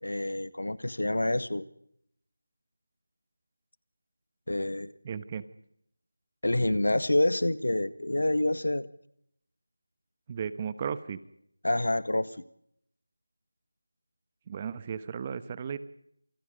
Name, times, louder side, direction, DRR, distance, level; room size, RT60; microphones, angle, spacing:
voice 1, 0.0-1.6 4.5-4.9 6.4-8.9 11.6-12.4, left 1 dB, 80° left, 15 dB, 1.9 m, -27 dB
voice 2, 5.0-5.5 10.3-11.2 14.5-15.8, right 7 dB, 20° right, 15 dB, 1.2 m, -35 dB
27.5 x 27.5 x 5.2 m, 0.72 s
figure-of-eight pair, 170°, 0 cm